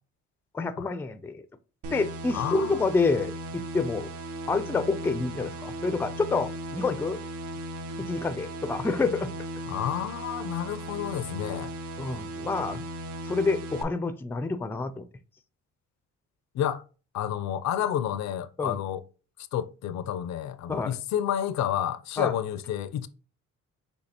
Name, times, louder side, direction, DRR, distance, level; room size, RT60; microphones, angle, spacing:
voice 1, 0.5-1.4 1.9-4.1 4.5-7.2 8.0-9.3 12.0-12.8 13.3-15.1 18.6-18.8 20.7-21.0 22.2-22.3, left 3 dB, 10° left, 0.3 m, -28 dB
sound 1, 1.8-13.8, right 1 dB, 75° right, 0.6 m, -37 dB
voice 2, 2.3-2.9 9.7-11.7 16.5-16.8 17.1-19.0 19.5-23.1, left 10 dB, 65° left, 0.5 m, -30 dB
6.3 x 2.8 x 2.8 m
cardioid pair, 90°, 30 cm